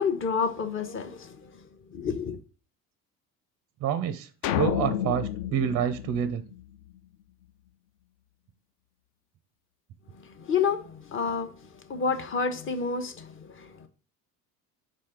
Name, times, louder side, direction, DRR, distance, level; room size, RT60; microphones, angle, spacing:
voice 1, 0.0-1.6 1.9-2.4 10.1-13.9, left 5 dB, 25° left, 0.8 m, -30 dB
voice 2, 3.8-6.4, right 9 dB, 35° right, 0.5 m, -28 dB
sound 1, 4.4-6.9, left 11 dB, 45° left, 0.4 m, -30 dB
5.2 x 4.3 x 4.9 m
figure-of-eight pair, 55°, 48 cm